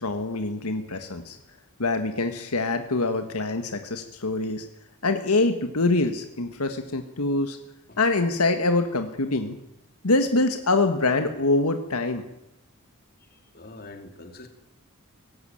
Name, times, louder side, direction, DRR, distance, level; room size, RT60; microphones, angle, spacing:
voice 1, 0.0-1.4 1.8-4.6 5.0-7.6 8.0-9.6 10.0-12.2, left 2 dB, 85° left, 7 dB, 1.6 m, -24 dB
voice 2, 13.2-14.5, left 2 dB, 45° left, 5 dB, 2.9 m, -45 dB
18.5 x 15.5 x 9.1 m, 0.90 s
head